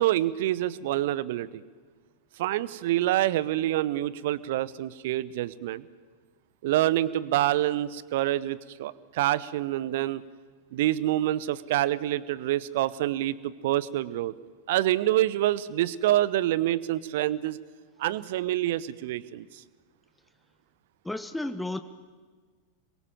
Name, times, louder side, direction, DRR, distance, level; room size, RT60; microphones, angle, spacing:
voice 1, 0.0-1.6 2.4-5.8 6.6-10.2 10.7-14.3 14.7-17.6 18.0-19.5, right 14 dB, 55° right, 19 dB, 0.9 m, -26 dB
voice 2, 21.0-21.8, left 1 dB, 5° left, 10 dB, 0.9 m, -32 dB
27.0 x 22.5 x 7.5 m, 1.5 s
figure-of-eight pair, 90°, 0 cm